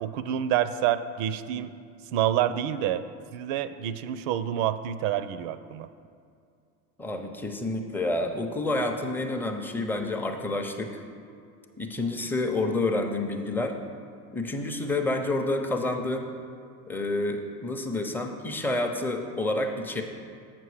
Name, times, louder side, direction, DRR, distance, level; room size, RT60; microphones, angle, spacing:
voice 1, 0.0-1.7 2.1-3.0 3.3-5.9, right 11 dB, 55° right, 13 dB, 0.6 m, -27 dB
voice 2, 7.0-11.0 11.8-13.9 14.3-16.3 16.9-20.0, left 2 dB, 5° left, 3 dB, 0.6 m, -29 dB
7.6 x 6.0 x 4.9 m, 2.4 s
hypercardioid pair, 80°, 48 cm